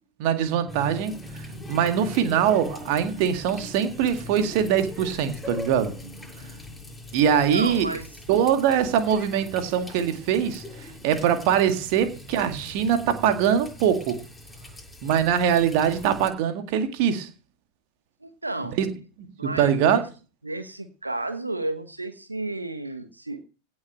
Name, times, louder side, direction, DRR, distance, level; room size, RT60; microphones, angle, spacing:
voice 1, 0.2-1.1 1.7-5.9 7.1-8.0 8.3-14.2 15.0-17.3 18.8-18.9 19.2-20.0, right 8 dB, 45° right, 2.0 m, -23 dB
Water tap faucet, 0.7-16.3, left 2 dB, 5° left, 7.1 m, -41 dB
voice 2, 7.2-8.1 18.2-18.8 19.4-20.1 20.4-23.4, right 2 dB, 85° right, 1.2 m, -32 dB
17.0 x 6.3 x 6.5 m
figure-of-eight pair, 90°, 0 cm